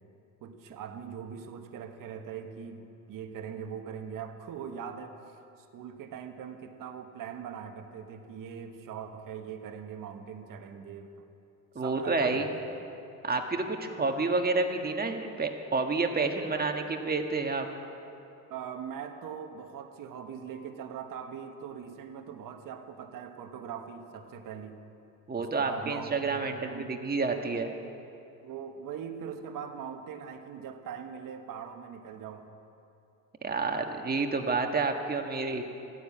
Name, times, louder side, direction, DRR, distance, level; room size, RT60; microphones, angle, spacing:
voice 1, 0.4-11.2 11.7-12.8 16.7-16.8 18.5-24.8 25.4-26.9 28.4-32.5, right 7 dB, 60° right, 6 dB, 1.3 m, -41 dB
voice 2, 11.7-12.5 13.2-17.7 25.3-27.7 33.4-35.6, right 3 dB, 25° right, 4 dB, 1.6 m, -29 dB
14.5 x 9.8 x 8.6 m, 2.8 s
supercardioid pair, 85°, 38 cm